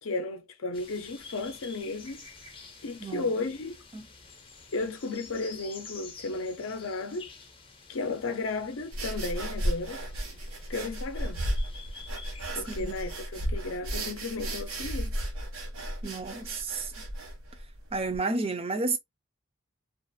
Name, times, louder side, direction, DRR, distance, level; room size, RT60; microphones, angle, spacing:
voice 1, 0.0-2.3 2.8-3.8 4.7-7.3 7.9-10.0 10.7-11.4 12.5-15.2, left 3 dB, 70° left, 0.6 m, -34 dB
sound 1, 0.7-13.2, left 4 dB, 25° left, 0.6 m, -49 dB
voice 2, 3.0-3.3 3.9-4.1 12.7-12.9 16.0-16.9 17.9-19.0, right 3 dB, 25° right, 0.4 m, -31 dB
sound 2, 8.9-18.2, right 1 dB, 90° right, 0.9 m, -34 dB
2.4 x 2.4 x 2.6 m
head